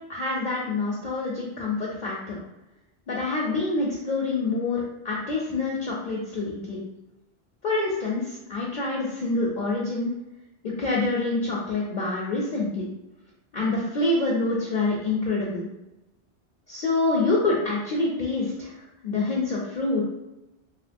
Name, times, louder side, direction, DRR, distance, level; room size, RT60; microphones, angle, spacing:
voice 1, 0.1-2.4 3.1-6.8 7.6-10.1 10.6-12.9 13.5-15.6 16.7-18.8 19.0-20.0, left 2 dB, 55° left, -4 dB, 0.6 m, -26 dB
2.8 x 2.8 x 2.5 m, 0.94 s
omnidirectional pair, 1.2 m